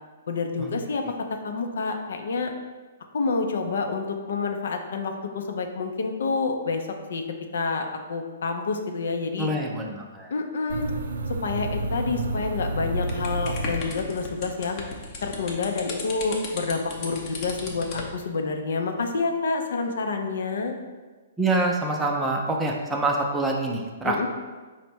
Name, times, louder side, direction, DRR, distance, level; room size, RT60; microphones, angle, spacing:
voice 1, 0.3-1.0 1.3-2.5 3.1-7.2 7.5-9.5 10.3-10.9 11.4-14.8 15.2-20.8 24.0-24.3, left 4 dB, 70° left, 4 dB, 0.5 m, -28 dB
voice 2, 9.4-10.3 21.4-24.3, right 2 dB, 10° right, 0 dB, 0.5 m, -26 dB
sound 1, 10.7-14.4, right 2 dB, 80° right, 0.3 m, -30 dB
sound 2, 13.1-18.1, left 3 dB, 35° left, 0.7 m, -36 dB
4.4 x 2.1 x 4.3 m, 1.3 s
hypercardioid pair, 135°, 0 cm